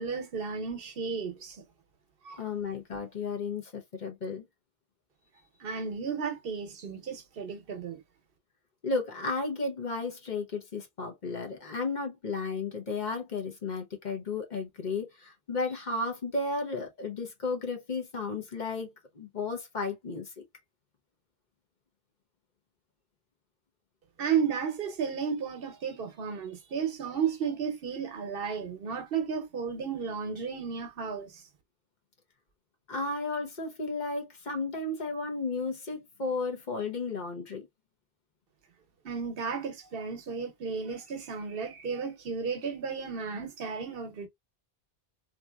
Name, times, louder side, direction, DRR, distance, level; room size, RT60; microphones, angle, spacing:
voice 1, 0.0-1.6 2.2-2.4 5.6-8.0 24.2-31.4 39.0-44.3, right 6 dB, 65° right, 0.9 m, -33 dB
voice 2, 2.4-4.5 8.8-20.3 32.9-37.7, left 3 dB, 50° left, 1.0 m, -33 dB
3.7 x 2.8 x 2.2 m
omnidirectional pair, 1.0 m